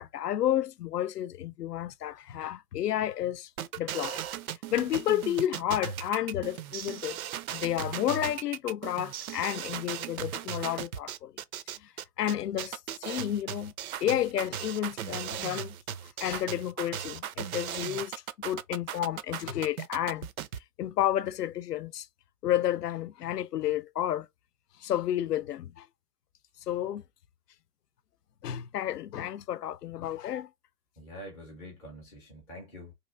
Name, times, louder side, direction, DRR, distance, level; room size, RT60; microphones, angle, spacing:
voice 1, 0.0-3.5 3.8-4.2 4.7-7.2 7.5-11.3 11.8-11.9 12.2-13.7 14.0-15.7 16.2-18.1 18.4-20.3 20.8-22.1 22.4-24.3 24.8-25.9 26.7-27.0 28.4-30.5, left 12 dB, 80° left, 0.6 m, -31 dB
sound 1, 3.6-20.6, right 10 dB, 65° right, 0.5 m, -37 dB
voice 2, 31.0-32.9, equal, 5° left, 0.3 m, -45 dB
3.0 x 2.5 x 3.6 m
hypercardioid pair, 125°, 47 cm